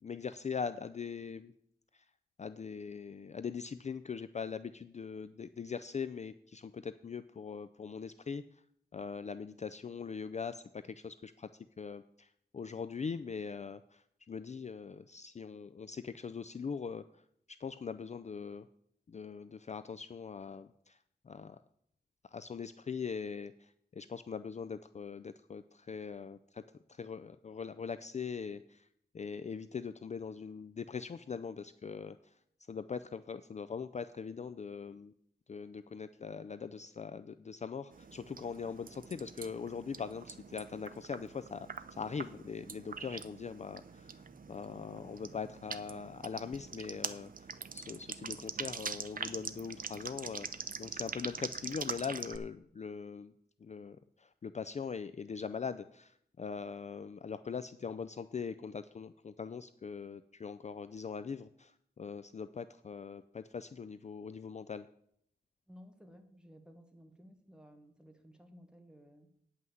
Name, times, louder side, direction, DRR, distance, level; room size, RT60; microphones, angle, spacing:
voice 1, 0.0-1.5 1.9-2.0 2.4-8.4 8.9-11.5 11.8-12.3 12.5-17.0 17.6-18.7 19.1-21.0 21.3-21.6 22.3-26.6 26.9-28.9 29.1-32.2 32.7-35.1 35.5-41.7 42.0-47.3 47.7-53.3 53.6-64.9, left 6 dB, 40° left, 12 dB, 0.4 m, -41 dB
sound 1, 37.9-52.4, right 5 dB, 50° right, 0.6 m, -44 dB
voice 2, 65.7-69.3, equal, 5° right, 5 dB, 1.5 m, -57 dB
9.5 x 5.7 x 7.7 m, 0.70 s
wide cardioid pair, 90°, 18 cm